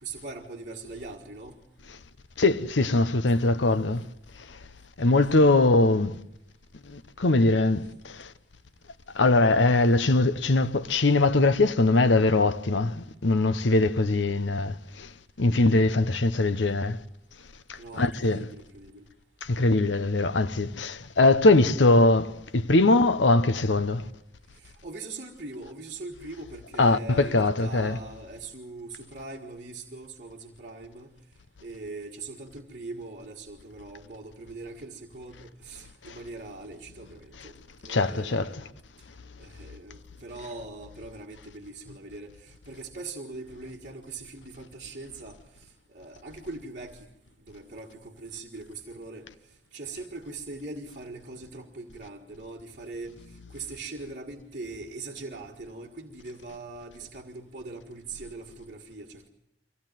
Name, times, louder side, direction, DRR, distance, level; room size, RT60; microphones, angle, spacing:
voice 1, 0.0-1.6 17.8-19.1 24.5-31.1 31.6-37.5 37.8-38.6 39.4-47.1 47.4-49.3 49.7-59.3, right 3 dB, 45° right, 1.7 m, -41 dB
voice 2, 2.4-4.1 4.5-4.6 5.0-6.2 6.9-8.3 9.1-15.1 15.4-17.0 17.7-18.5 19.4-24.1 26.8-28.0 37.9-38.6, left 2 dB, 85° left, 0.9 m, -22 dB
24.0 x 16.5 x 9.2 m
head